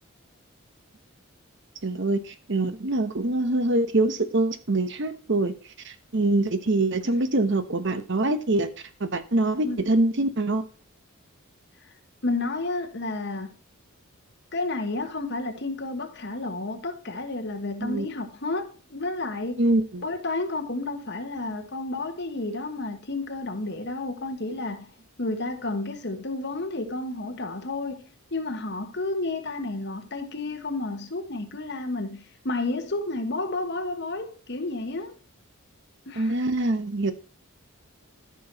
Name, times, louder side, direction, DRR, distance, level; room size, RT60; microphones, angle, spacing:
voice 1, 1.8-5.5 5.8-8.7 9.0-10.6 17.8-18.1 19.6-20.0 36.2-37.1, right 2 dB, 55° right, 1.0 m, -24 dB
voice 2, 12.2-13.5 14.5-19.6 20.0-24.9 25.2-35.1 36.1-36.3, left 2 dB, 50° left, 1.5 m, -31 dB
13.5 x 6.2 x 2.9 m
head